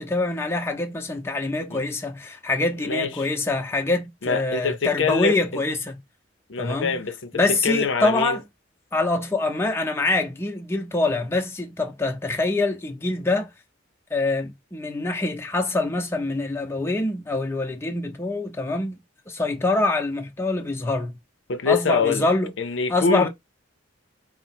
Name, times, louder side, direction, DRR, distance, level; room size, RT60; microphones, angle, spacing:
voice 1, 0.0-6.0 6.6-7.0 7.3-8.4 8.9-13.5 14.1-19.0 19.3-21.2 21.7-22.5 22.9-23.3, left 2 dB, 15° left, 0.6 m, -25 dB
voice 2, 2.8-3.3 4.2-5.4 6.5-8.4 21.5-22.2 22.6-23.3, left 5 dB, 70° left, 0.6 m, -24 dB
4.5 x 2.0 x 4.2 m
head